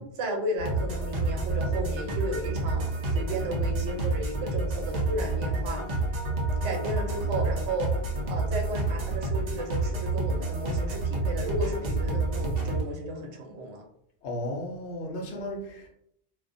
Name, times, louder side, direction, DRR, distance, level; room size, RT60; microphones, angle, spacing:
voice 1, 0.0-5.8 6.6-7.9 8.3-13.8, right 1 dB, 85° right, 2 dB, 0.9 m, -34 dB
sound 1, 0.6-12.8, right 2 dB, 50° right, 0.5 m, -29 dB
voice 2, 14.2-15.9, left 1 dB, 80° left, 0 dB, 0.9 m, -34 dB
2.4 x 2.1 x 2.5 m, 0.73 s
omnidirectional pair, 1.1 m